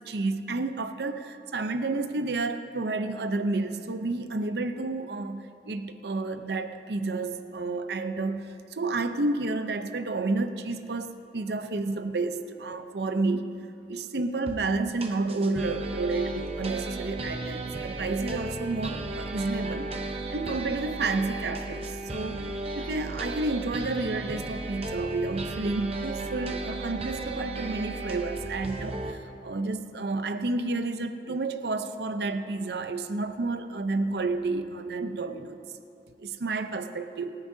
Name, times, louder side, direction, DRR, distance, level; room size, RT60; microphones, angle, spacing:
voice 1, 0.0-13.6 13.9-19.9 20.3-22.4 22.8-35.6 36.2-37.4, right 3 dB, 70° right, 9 dB, 0.7 m, -30 dB
sound 1, 14.5-14.6 15.0-29.1, right 2 dB, 35° right, 0.8 m, -35 dB
27.5 x 9.8 x 2.7 m, 2.6 s
head